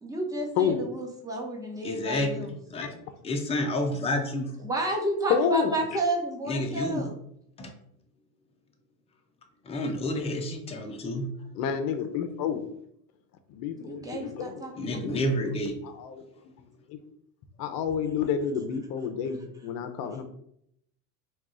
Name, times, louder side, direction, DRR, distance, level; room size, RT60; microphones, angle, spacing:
voice 1, 0.0-2.5 4.6-7.1 13.8-15.1, right 1 dB, 5° right, -1 dB, 1.0 m, -31 dB
voice 2, 1.8-3.0 3.2-4.5 6.5-7.1 7.6-7.7 9.6-11.3 14.8-15.8, left 1 dB, 15° left, 4 dB, 0.4 m, -30 dB
voice 3, 5.3-6.0 11.6-12.6 13.5-14.6 14.8-15.5 15.8-16.2 16.9-17.0 17.6-20.2, left 7 dB, 45° left, 8 dB, 0.7 m, -29 dB
4.5 x 2.4 x 3.7 m, 0.71 s
supercardioid pair, 115°, 48 cm